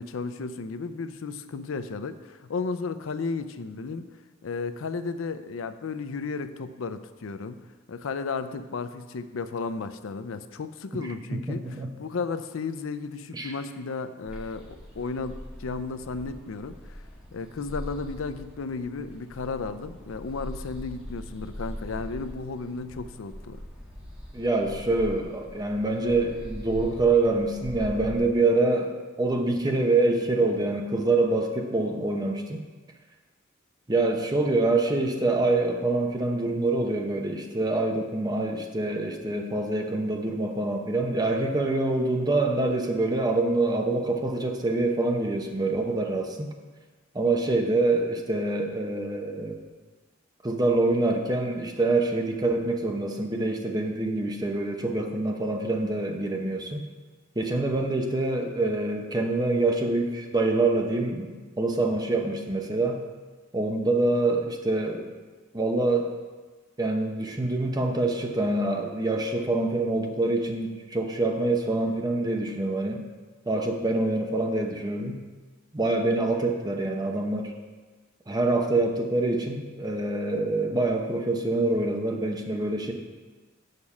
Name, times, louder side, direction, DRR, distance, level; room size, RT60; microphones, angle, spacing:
voice 1, 0.0-4.0 4.4-7.6 7.9-17.0 17.3-23.6, left 4 dB, 75° left, 11 dB, 0.5 m, -34 dB
voice 2, 11.5-11.9 13.3-13.5 24.3-32.6 33.9-46.5 47.1-49.6 50.4-56.9 57.4-63.0 63.5-65.2 65.5-66.1 66.8-73.0 73.5-75.2 75.7-77.5 78.3-82.9, right 2 dB, 20° right, 3 dB, 0.8 m, -25 dB
sound 1, 14.3-28.2, equal, 5° right, 1.7 m, -41 dB
6.6 x 5.3 x 7.1 m, 1.3 s
head